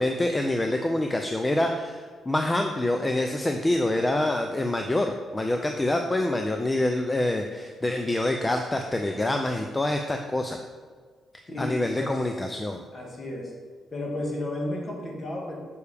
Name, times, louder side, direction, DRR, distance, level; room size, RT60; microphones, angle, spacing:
voice 1, 0.0-10.6 11.6-12.8, left 1 dB, 15° left, 4 dB, 0.4 m, -26 dB
voice 2, 11.5-12.2 12.9-13.5 13.9-15.6, left 1 dB, 35° left, -1 dB, 1.6 m, -33 dB
6.9 x 6.6 x 3.4 m, 1.5 s
cardioid pair, 130°, 0 cm